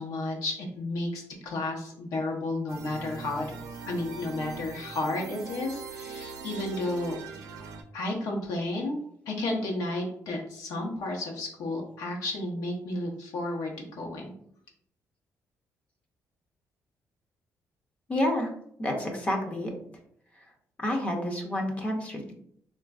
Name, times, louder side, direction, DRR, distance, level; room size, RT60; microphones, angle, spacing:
voice 1, 0.0-3.6 3.9-7.2 7.9-9.0 9.3-14.3, left 2 dB, 85° left, -1 dB, 0.8 m, -32 dB
sound 1, 2.7-7.8, right 5 dB, 75° right, 0.5 m, -41 dB
voice 2, 18.1-18.5 18.8-19.7 20.8-22.3, left 1 dB, 25° left, 1 dB, 0.5 m, -29 dB
4.1 x 2.4 x 2.3 m, 0.67 s
cardioid pair, 135°, 6 cm